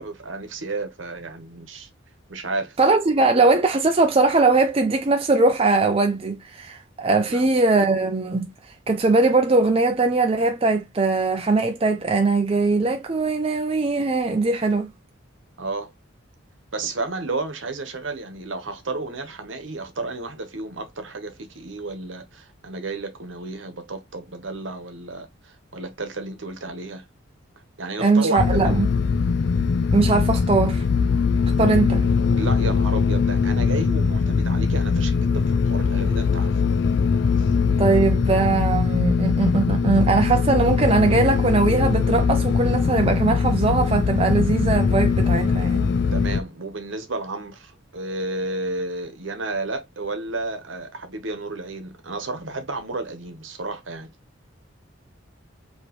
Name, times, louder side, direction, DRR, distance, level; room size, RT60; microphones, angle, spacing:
voice 1, 0.0-1.9 2.3-2.8 7.3-7.5 15.6-15.9 16.7-27.1 27.8-28.8 32.4-36.6 37.4-37.5 46.1-54.1, right 2 dB, 70° right, 1.1 m, -32 dB
voice 2, 2.8-8.5 8.9-14.9 28.0-28.9 29.9-30.8 31.6-32.0 37.8-45.9, right 3 dB, 30° right, 0.5 m, -20 dB
sound 1, 28.4-46.4, left 5 dB, 55° left, 0.4 m, -21 dB
5.0 x 3.0 x 3.0 m
head